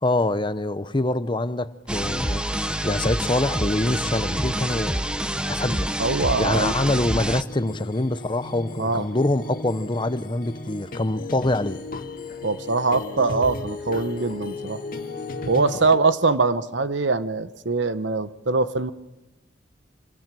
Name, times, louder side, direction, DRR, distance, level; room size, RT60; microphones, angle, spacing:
voice 1, 0.0-5.1 5.4-5.9 6.4-11.8, left 2 dB, 25° left, 0.8 m, -25 dB
sound 1, 1.9-7.4, right 1 dB, 5° right, 0.8 m, -27 dB
voice 2, 6.0-6.7 8.8-9.1 12.4-14.8 15.5-18.9, right 3 dB, 75° right, 1.1 m, -23 dB
sound 2, 7.5-16.0, left 2 dB, 50° left, 1.9 m, -35 dB
26.0 x 20.0 x 7.7 m
head